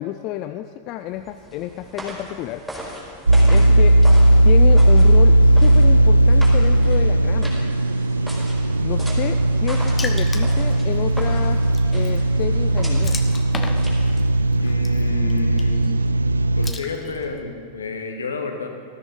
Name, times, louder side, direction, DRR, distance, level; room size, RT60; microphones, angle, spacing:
voice 1, 0.0-2.7 3.5-3.9 4.4-7.6 8.8-13.2, left 13 dB, 40° left, 9 dB, 0.5 m, -30 dB
sound 1, 1.1-14.4, right 1 dB, 5° right, 4.6 m, -38 dB
sound 2, 3.3-16.7, right 1 dB, 80° right, 0.4 m, -16 dB
voice 2, 3.4-3.7 14.6-15.9 16.6-18.7, left 3 dB, 70° left, 4 dB, 1.6 m, -30 dB
Water / Splash splatter, 10.0-17.4, left 3 dB, 15° left, 1.2 m, -38 dB
19.5 x 14.0 x 3.9 m, 2.3 s
figure-of-eight pair, 90°, 0 cm